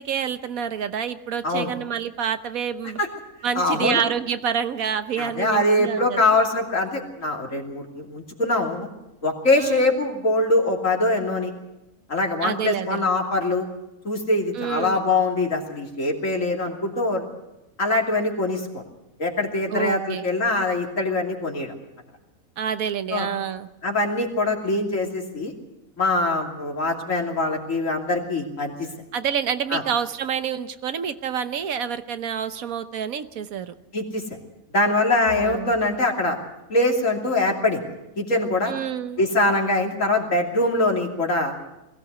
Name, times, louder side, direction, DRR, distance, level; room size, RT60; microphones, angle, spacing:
voice 1, 0.0-3.0 3.4-6.3 9.5-9.9 12.4-13.1 14.5-15.0 19.7-20.3 22.6-23.7 29.1-33.7 35.3-35.7 38.7-39.2, right 8 dB, 80° right, 11 dB, 1.4 m, -28 dB
voice 2, 3.5-4.0 5.2-8.9 9.2-11.5 12.1-13.6 14.0-17.2 17.8-18.8 19.2-21.7 23.1-23.3 23.8-25.5 26.0-28.9 29.7-29.8 33.9-34.2 34.7-36.4 36.7-37.8 38.2-38.7 39.2-41.5, left 2 dB, 65° left, 1 dB, 3.2 m, -23 dB
21.5 x 16.0 x 8.1 m, 0.93 s
omnidirectional pair, 1.5 m